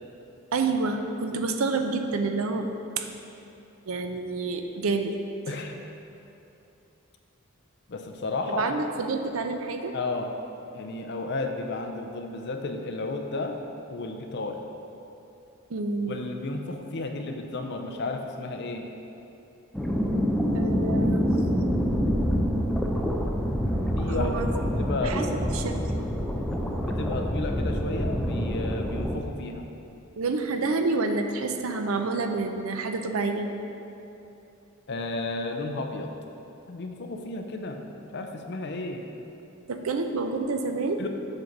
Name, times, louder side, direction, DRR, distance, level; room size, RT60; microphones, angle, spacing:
voice 1, 0.5-2.7 3.0-3.1 3.9-5.1 8.5-9.9 15.7-16.2 20.5-21.3 24.1-24.5 25.0-25.8 30.2-33.5 39.7-41.0, right 3 dB, 75° right, 6 dB, 0.5 m, -28 dB
voice 2, 5.5-5.8 7.9-8.7 9.9-10.3 10.7-13.5 13.9-14.6 16.1-18.9 24.0-24.4 24.8-25.5 26.9-29.7 34.9-36.1 36.7-37.8 38.1-39.0 41.0-41.1, left 2 dB, 55° left, 4 dB, 0.6 m, -33 dB
sound 1, 19.7-29.2, equal, 5° left, 0.5 m, -26 dB
7.8 x 4.0 x 6.0 m, 2.9 s
head